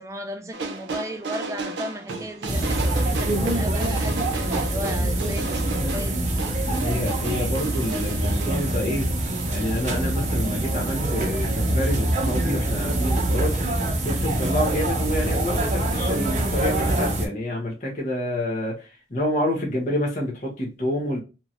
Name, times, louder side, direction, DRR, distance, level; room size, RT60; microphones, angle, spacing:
voice 1, 0.0-6.3, equal, 15° right, 0.3 m, -35 dB
sound 1, 0.5-8.6, right 3 dB, 85° right, 0.5 m, -34 dB
sound 2, 2.5-17.3, right 1 dB, 40° right, 0.7 m, -24 dB
voice 2, 6.8-9.1 9.5-13.6 14.0-21.2, left 1 dB, 45° left, 0.9 m, -28 dB
2.8 x 2.5 x 2.8 m
head